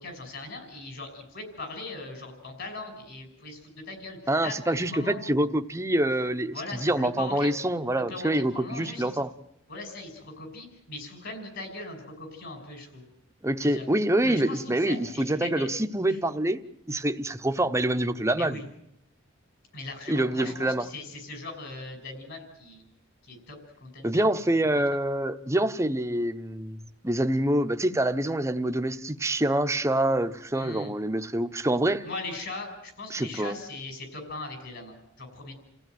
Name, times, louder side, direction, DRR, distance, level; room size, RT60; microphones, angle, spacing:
voice 1, 0.0-5.2 6.5-7.5 8.1-9.1 9.7-13.1 13.6-13.9 14.2-15.7 16.1-16.2 18.4-18.6 19.7-22.8 23.2-24.2 24.5-24.8 30.5-30.9 32.0-35.5, left 2 dB, 60° left, 6 dB, 6.2 m, -40 dB
voice 2, 4.3-6.5 6.8-9.3 13.4-16.6 16.9-18.6 20.1-20.9 24.0-26.8 27.0-32.1 33.1-33.6, right 1 dB, 15° right, 8 dB, 0.9 m, -26 dB
29.0 x 15.5 x 9.3 m, 0.79 s
head